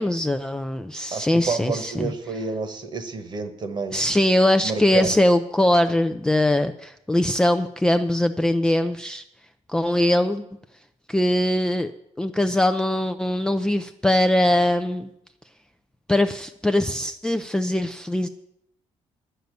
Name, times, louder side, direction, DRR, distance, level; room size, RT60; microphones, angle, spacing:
voice 1, 0.0-2.1 3.9-9.2 9.7-10.4 11.1-11.9 12.2-15.1 16.1-18.3, left 1 dB, 5° left, 6 dB, 0.4 m, -21 dB
voice 2, 1.1-4.0 4.6-5.1, right 4 dB, 40° right, 9 dB, 1.3 m, -29 dB
10.5 x 6.8 x 9.2 m, 0.77 s
cardioid pair, 160°, 12 cm